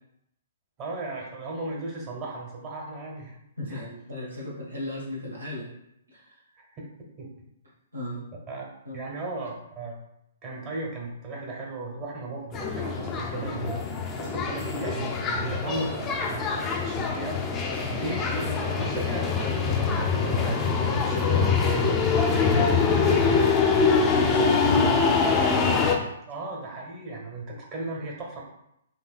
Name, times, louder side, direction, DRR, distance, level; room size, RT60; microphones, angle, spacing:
voice 1, 0.8-3.3 3.7-3.9 6.6-6.8 7.2-7.3 8.5-8.7 8.9-10.0 10.4-13.8 14.2-17.4 17.9-21.9 22.4-23.2 26.3-28.4, right 2 dB, 30° right, -2 dB, 0.9 m, -35 dB
voice 2, 3.6-5.7 6.1-6.4 7.9-8.2 8.8-9.0 22.1-25.1, left 1 dB, 80° right, -4 dB, 1.1 m, -36 dB
sound 1, 12.5-26.0, left 5 dB, 20° left, 0.4 m, -24 dB
4.2 x 2.7 x 2.4 m, 0.79 s
figure-of-eight pair, 120°, 0 cm